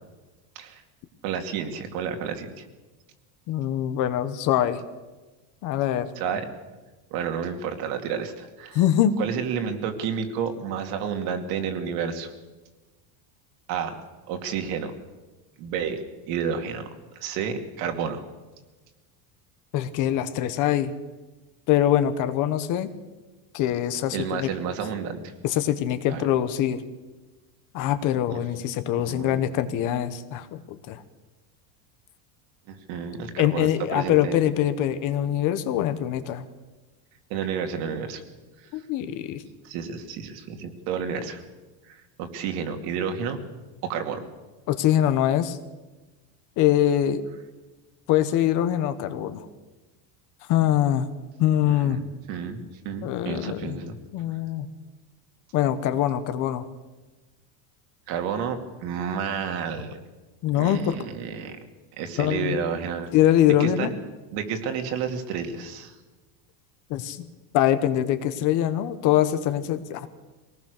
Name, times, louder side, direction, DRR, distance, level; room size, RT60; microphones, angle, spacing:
voice 1, 1.2-2.7 6.2-6.4 7.1-8.8 9.2-12.3 13.7-14.0 14.3-14.9 15.6-16.0 16.3-16.9 17.2-18.2 24.1-25.2 26.1-26.2 28.3-28.4 28.9-29.4 32.7-34.4 37.3-38.2 39.6-41.4 41.9-43.4 43.8-44.2 51.7-54.0 58.1-60.0 60.5-61.6 62.0-63.1 63.6-63.9 64.3-65.9, right 7 dB, 55° right, 5 dB, 2.6 m, -30 dB
voice 2, 3.5-4.8 5.6-6.1 8.7-9.2 19.7-20.9 21.7-22.9 23.5-24.5 25.4-26.8 27.7-31.0 33.4-36.4 38.7-39.4 44.7-45.6 46.6-47.2 48.1-49.4 50.5-51.1 51.4-52.0 53.0-53.8 54.1-54.7 55.5-56.7 60.4-60.9 62.2-62.6 63.1-63.9 66.9-67.2 67.5-70.1, left 11 dB, 40° left, 11 dB, 1.2 m, -23 dB
23.5 x 18.5 x 6.6 m, 1.2 s
cardioid pair, 175°, 45 cm